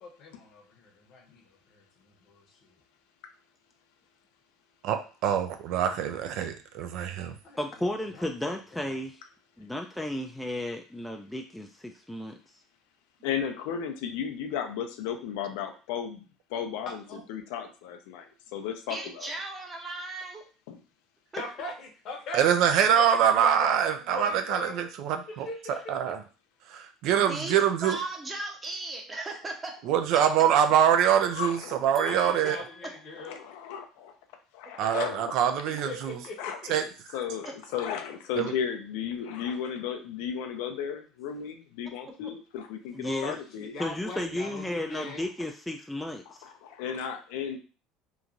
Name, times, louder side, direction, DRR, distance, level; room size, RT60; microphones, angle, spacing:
voice 1, 0.0-2.7 7.4-8.3 16.9-17.3 18.9-19.1 21.4-24.7 25.4-26.1 32.0-33.4 35.7-36.8 43.0-45.2, left 2 dB, 60° left, 2 dB, 0.8 m, -41 dB
voice 2, 4.8-7.3 22.3-25.5 25.9-26.2 26.7-28.0 29.9-32.6 34.8-36.2 36.7-36.9 38.4-38.5, right 9 dB, 65° right, 8 dB, 0.4 m, -24 dB
voice 3, 7.6-9.2 9.6-12.4 32.0-32.7 42.9-43.3 43.8-46.4, left 1 dB, 5° left, 3 dB, 0.3 m, -34 dB
voice 4, 13.2-16.2 16.5-17.0 17.3-19.3 20.7-20.8 31.3-31.8 33.2-34.2 34.5-35.3 36.4-36.6 37.1-43.0 43.2-43.7 45.0-45.1 46.3-47.6, left 8 dB, 75° left, 6 dB, 0.4 m, -34 dB
voice 5, 18.9-20.4 21.3-21.4 24.7-24.9 25.3-25.5 27.1-29.7 30.1-30.2 32.4-32.9 34.6-34.9, right 2 dB, 25° right, 2 dB, 0.8 m, -37 dB
2.9 x 2.3 x 2.5 m, 0.36 s
supercardioid pair, 85°, 0 cm